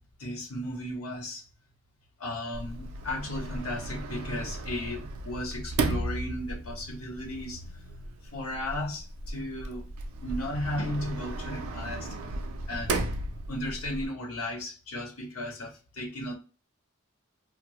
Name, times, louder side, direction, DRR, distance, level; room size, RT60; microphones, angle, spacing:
voice 1, 0.2-1.4 2.2-7.6 8.3-9.9 10.2-12.1 12.7-13.1 13.5-16.3, left 1 dB, 85° left, 0.8 m, -35 dB
Sliding door, 2.5-14.1, right 2 dB, 90° right, 0.5 m, -35 dB
2.7 x 2.1 x 3.0 m
head